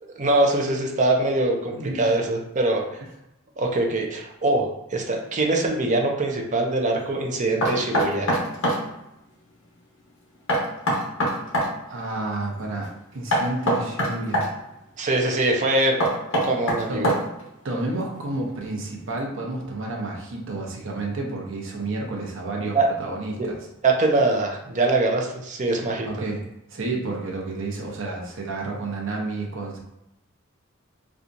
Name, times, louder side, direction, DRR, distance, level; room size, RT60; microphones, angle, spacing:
voice 1, 0.0-2.8 3.6-8.3 15.0-16.0 16.4-17.1 22.7-22.9 23.4-23.5 23.8-26.1, right 2 dB, 35° right, 1 dB, 0.6 m, -23 dB
voice 2, 1.8-2.1 11.9-14.5 16.9-17.1 17.6-23.6 26.0-26.4 26.7-29.8, right 2 dB, 65° right, -1 dB, 0.8 m, -30 dB
Knock, 7.6-8.8 10.5-11.7 13.3-14.5 16.0-17.4, equal, 65° left, 1.0 m, -22 dB
4.3 x 2.4 x 2.6 m, 0.87 s
head